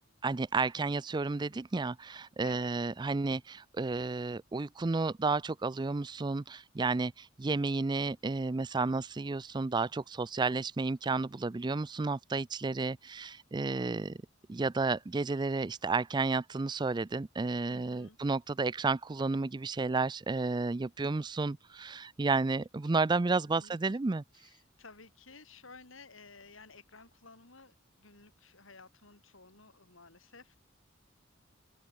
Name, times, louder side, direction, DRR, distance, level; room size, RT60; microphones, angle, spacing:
voice 1, 0.2-14.2 14.5-24.2, right 3 dB, 20° right, 0.4 m, -32 dB
voice 2, 2.4-2.7 17.7-18.2 23.6-24.0 24.3-30.6, left 4 dB, 75° left, 4.5 m, -55 dB
open air
head